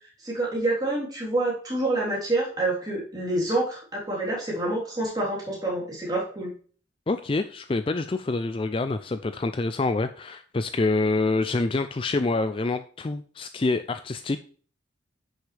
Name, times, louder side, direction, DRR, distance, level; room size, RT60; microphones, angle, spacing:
voice 1, 0.2-6.5, right 2 dB, 20° right, -4 dB, 3.6 m, -27 dB
voice 2, 7.1-14.4, left 3 dB, 25° left, 10 dB, 0.4 m, -26 dB
9.8 x 6.4 x 3.4 m, 0.44 s
head